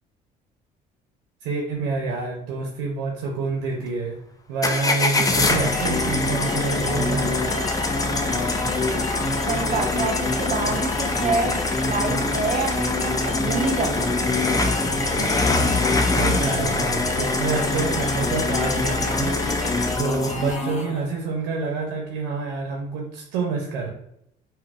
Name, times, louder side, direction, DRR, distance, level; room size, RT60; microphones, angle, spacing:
voice 1, 1.4-4.2 4.5-7.7 16.1-19.4 20.0-23.9, right 4 dB, 85° right, 0 dB, 0.5 m, -27 dB
sound 1, 4.6-20.5, left 3 dB, 20° left, 0.4 m, -25 dB
sound 2, 5.2-21.0, left 2 dB, 35° left, 0.8 m, -28 dB
voice 2, 9.5-14.1, right 3 dB, 40° right, 5 dB, 0.5 m, -27 dB
3.8 x 2.1 x 2.3 m, 0.74 s
supercardioid pair, 75°, 20 cm